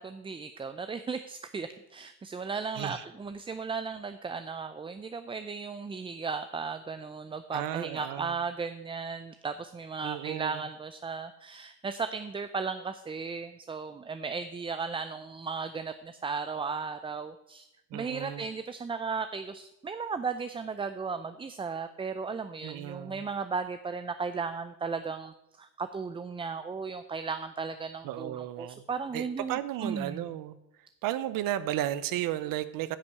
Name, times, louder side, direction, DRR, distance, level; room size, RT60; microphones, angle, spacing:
voice 1, 0.0-17.6 17.9-30.3, right 5 dB, 15° right, 10 dB, 0.4 m, -36 dB
voice 2, 2.7-3.0 7.5-8.3 10.0-10.6 17.9-18.5 22.6-23.3 28.0-28.8 29.1-30.6 31.0-33.0, right 13 dB, 70° right, 14 dB, 0.7 m, -34 dB
10.0 x 5.4 x 8.2 m, 0.86 s
cardioid pair, 120°, 34 cm